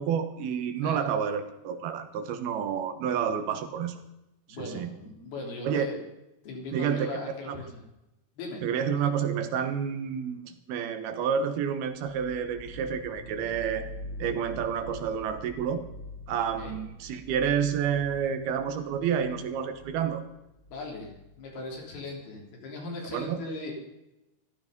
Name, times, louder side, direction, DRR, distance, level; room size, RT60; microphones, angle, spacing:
voice 1, 0.0-4.0 4.6-4.9 5.6-5.9 6.7-7.1 7.5-7.6 8.6-13.9 14.2-15.8 16.3-20.2 23.1-23.4, right 7 dB, 80° right, 8 dB, 3.2 m, -29 dB
voice 2, 4.5-6.0 6.4-7.8 8.4-8.6 16.6-16.7 20.7-23.7, left 2 dB, 75° left, -1 dB, 5.6 m, -39 dB
sound 1, 12.0-21.9, left 1 dB, 30° left, 2.3 m, -45 dB
14.5 x 13.5 x 5.3 m, 0.93 s
omnidirectional pair, 4.4 m